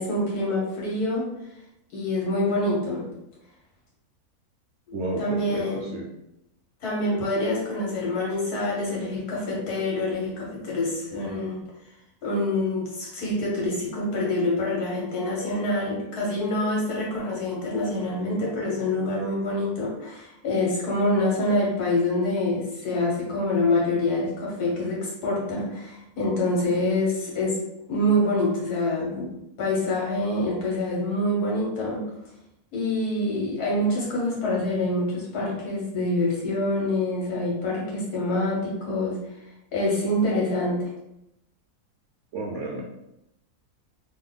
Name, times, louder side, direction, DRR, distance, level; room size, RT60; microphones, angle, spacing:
voice 1, 0.0-1.3 1.9-3.0 4.9-5.9 6.8-11.6 12.2-27.6 27.9-32.0 32.7-39.2 39.7-40.9, left 1 dB, 80° left, -4 dB, 1.6 m, -26 dB
voice 2, 4.9-6.1 42.3-42.8, right 2 dB, 65° right, -2 dB, 0.7 m, -32 dB
3.0 x 2.2 x 3.7 m, 0.87 s
omnidirectional pair, 1.6 m